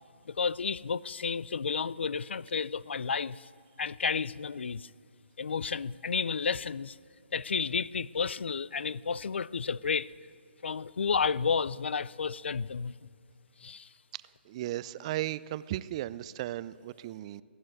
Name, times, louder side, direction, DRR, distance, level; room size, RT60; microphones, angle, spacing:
voice 1, 0.3-3.5 3.8-4.9 5.4-7.0 7.3-10.1 10.6-12.9 13.6-13.9, left 5 dB, 75° left, 0.4 m, -31 dB
voice 2, 14.5-17.4, right 14 dB, 30° right, 0.4 m, -35 dB
17.0 x 11.0 x 7.7 m
hypercardioid pair, 145°, 6 cm